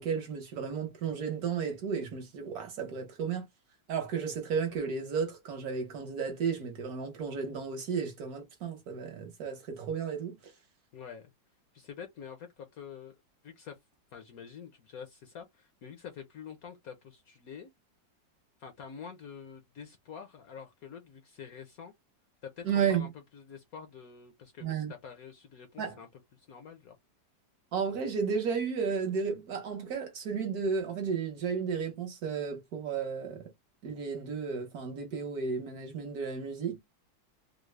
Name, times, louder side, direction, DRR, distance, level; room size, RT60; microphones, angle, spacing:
voice 1, 0.0-3.4 3.9-10.5 22.6-23.1 24.6-24.9 25.8-26.0 27.7-33.5 33.8-36.8, right 6 dB, 60° right, 1.2 m, -33 dB
voice 2, 10.9-11.3 11.7-13.2 13.4-13.8 14.1-17.7 18.6-21.9 22.4-27.0, left 7 dB, 65° left, 0.9 m, -47 dB
3.6 x 2.0 x 3.2 m
omnidirectional pair, 2.0 m